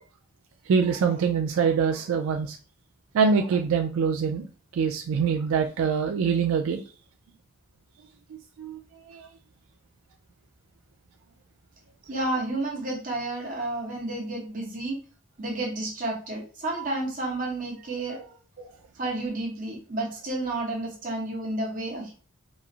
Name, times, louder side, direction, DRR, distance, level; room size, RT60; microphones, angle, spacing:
voice 1, 0.7-2.6 3.1-4.5 4.7-6.8 8.6-8.8 9.1-9.3, right 6 dB, 80° right, 3 dB, 0.3 m, -24 dB
voice 2, 12.1-15.0 15.4-18.7 19.0-22.1, right 2 dB, 40° right, -1 dB, 0.8 m, -31 dB
3.0 x 2.4 x 2.4 m, 0.39 s
head